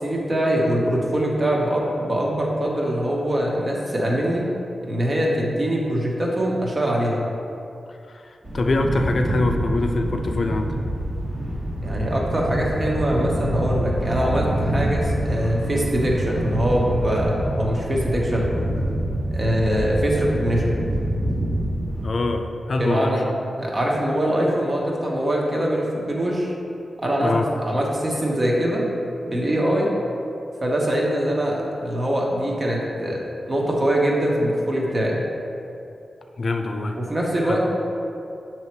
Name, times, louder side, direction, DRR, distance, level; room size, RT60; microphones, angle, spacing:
voice 1, 0.0-4.5 4.9-7.3 11.8-18.5 19.3-20.8 22.8-23.2 23.6-26.5 27.0-27.3 27.6-28.8 29.2-29.9 30.6-35.2 36.9-37.6, equal, 35° right, -3 dB, 1.2 m, -23 dB
voice 2, 8.1-10.8 22.0-23.2 27.2-27.5 36.4-37.0 37.5-37.6, left 2 dB, 60° left, 5 dB, 0.4 m, -24 dB
sound 1, 8.4-22.1, right 1 dB, 60° right, 1.4 m, -26 dB
6.5 x 3.1 x 4.6 m, 2.6 s
cardioid pair, 60°, 0 cm